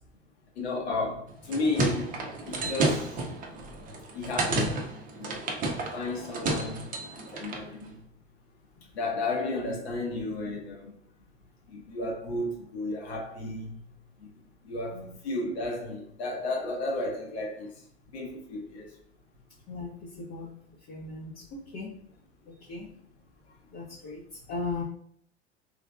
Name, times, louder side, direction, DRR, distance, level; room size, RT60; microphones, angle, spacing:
voice 1, 0.5-3.2 4.1-5.5 5.9-7.9 8.9-11.0 11.7-13.8 14.2-14.3 14.6-17.8 18.1-19.0, left 2 dB, 65° left, 1.2 m, -33 dB
sound 1, 1.3-7.7, right 2 dB, 25° right, 0.7 m, -31 dB
voice 2, 19.7-22.0 22.5-22.9 23.7-24.8, left 3 dB, 40° left, 0.9 m, -38 dB
3.4 x 3.3 x 2.3 m
figure-of-eight pair, 80°, 34 cm